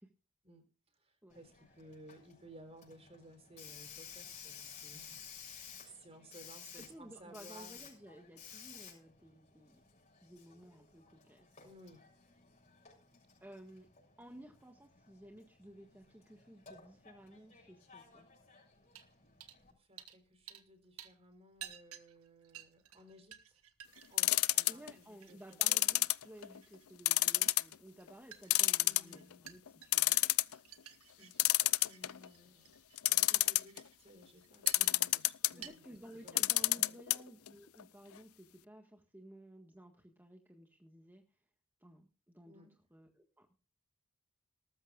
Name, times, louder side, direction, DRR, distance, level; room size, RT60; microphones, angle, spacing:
voice 1, 1.0-7.9 11.6-12.0 19.8-23.6 23.9-26.0 28.8-29.9 31.2-32.7 33.1-36.4 36.7-37.0 42.4-42.7, right 1 dB, 30° right, 8 dB, 3.9 m, -58 dB
Hiss, 1.3-19.7, left 7 dB, 35° left, 6.8 m, -55 dB
voice 2, 6.7-9.8 10.2-11.5 13.4-13.9 14.2-18.3 24.7-30.2 35.5-41.2 41.8-43.6, right 1 dB, 10° right, 2 dB, 1.6 m, -55 dB
Dishes and Some Water, 18.9-19.1 19.4-19.6 20.0-20.7 21.0-35.2 35.5-35.7, right 10 dB, 75° right, 1.6 m, -55 dB
sound 1, 24.2-24.9 25.6-26.6 27.0-27.7 28.1-28.2 28.5-29.3 29.7-29.8 29.9-30.5 31.4-32.3 33.0-33.8 34.7-35.5 36.3-37.2 37.5-37.6 37.8-37.9, left 18 dB, 70° left, 0.5 m, -28 dB
19.0 x 14.0 x 2.4 m, 0.35 s
head